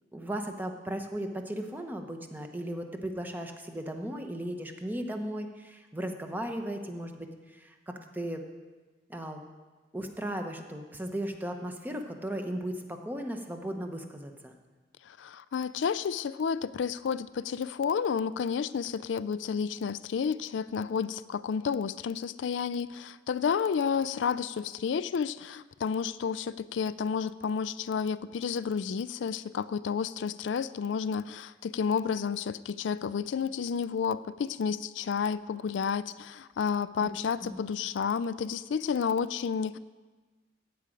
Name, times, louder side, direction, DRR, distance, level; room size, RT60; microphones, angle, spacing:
voice 1, 0.1-8.4 9.1-9.4 9.9-14.6 37.0-37.1 37.4-37.6, right 1 dB, 10° right, 4 dB, 1.0 m, -36 dB
voice 2, 15.1-39.8, left 6 dB, 85° left, 15 dB, 0.4 m, -31 dB
15.0 x 5.1 x 8.9 m, 1.3 s
head